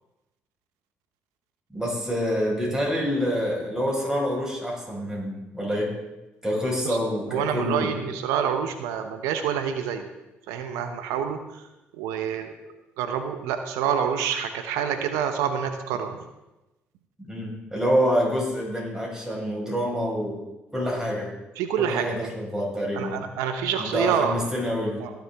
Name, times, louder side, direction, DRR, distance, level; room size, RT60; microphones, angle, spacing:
voice 1, 1.7-5.9 6.4-7.9 17.3-20.4 20.7-21.3 21.8-23.2 23.9-25.0, equal, 10° right, -3 dB, 5.0 m, -27 dB
voice 2, 7.3-10.1 10.5-11.6 11.9-12.5 13.0-16.2 21.6-22.3 22.9-24.5 25.0-25.1, right 8 dB, 85° right, 8 dB, 0.8 m, -27 dB
20.0 x 7.1 x 3.5 m, 1.0 s
supercardioid pair, 60°, 5 cm